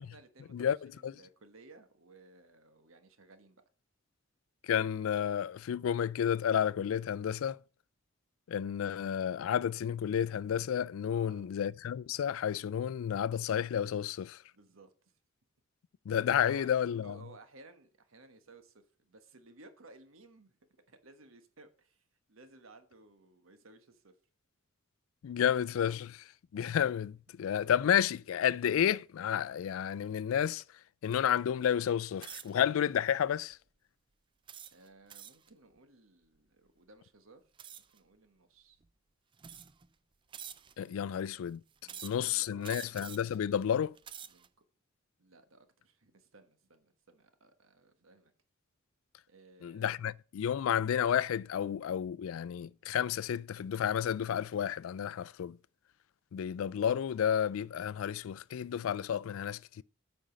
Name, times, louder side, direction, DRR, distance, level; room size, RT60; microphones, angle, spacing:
voice 1, 0.0-3.6 11.1-11.6 14.5-14.9 16.3-16.7 17.0-20.6 20.9-22.0 22.3-24.1 27.3-27.4 34.7-37.4 37.9-38.8 41.0-41.1 41.8-42.9 44.3-44.5 45.2-48.3 49.3-50.0, right 2 dB, 80° right, 1.3 m, -58 dB
voice 2, 4.7-7.6 8.5-14.4 16.1-17.2 25.2-26.2 26.5-30.6 31.0-33.6 40.8-41.6 42.0-43.9 49.6-55.6 56.3-59.8, left 9 dB, 80° left, 0.3 m, -31 dB
sound 1, 32.2-32.6 33.3-33.5 34.5-35.5 37.6-38.0 38.8-38.9 39.4-39.9 40.3-40.9 41.8-42.3 42.6-43.4 43.9-44.5, right 9 dB, 25° right, 0.3 m, -47 dB
8.8 x 5.2 x 5.2 m
head